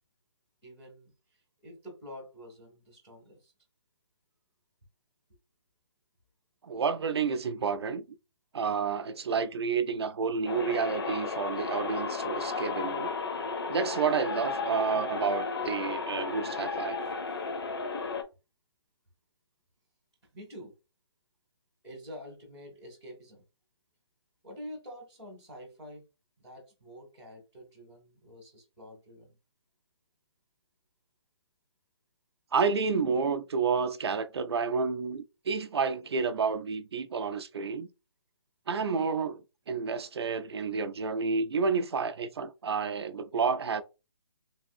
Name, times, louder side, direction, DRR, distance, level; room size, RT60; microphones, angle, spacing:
voice 1, 0.6-3.5 20.3-20.7 21.8-23.4 24.4-26.0 26.4-29.4, equal, ahead, 0.3 m, -47 dB
voice 2, 6.6-8.0 8.5-13.1 13.7-17.0 32.5-37.9 38.7-39.4 39.7-43.8, right 5 dB, 65° right, 0.4 m, -30 dB
sound 1, 10.4-18.2, left 4 dB, 60° left, 0.6 m, -34 dB
3.4 x 2.5 x 2.6 m
hypercardioid pair, 180°, 14 cm